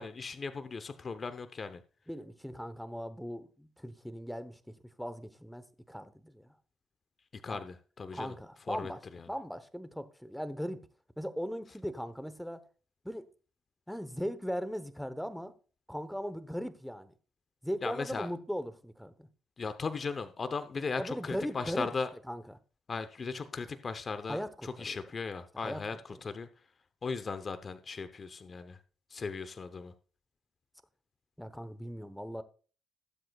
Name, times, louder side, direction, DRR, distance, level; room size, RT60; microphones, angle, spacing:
voice 1, 0.0-1.8 7.4-8.3 8.7-8.9 17.8-18.3 19.6-22.1 22.9-24.4 24.8-26.0 26.2-26.5 27.0-28.8 29.1-29.9, left 4 dB, 40° left, 0.8 m, -37 dB
voice 2, 2.1-6.5 7.5-7.6 8.1-10.8 11.2-12.6 13.0-13.2 13.9-15.5 15.9-17.1 17.6-19.3 21.0-21.9 22.2-22.6 24.3-25.0 25.5-26.2 31.4-32.4, equal, ahead, 1.0 m, -39 dB
18.5 x 7.8 x 2.4 m
cardioid pair, 90°, 0 cm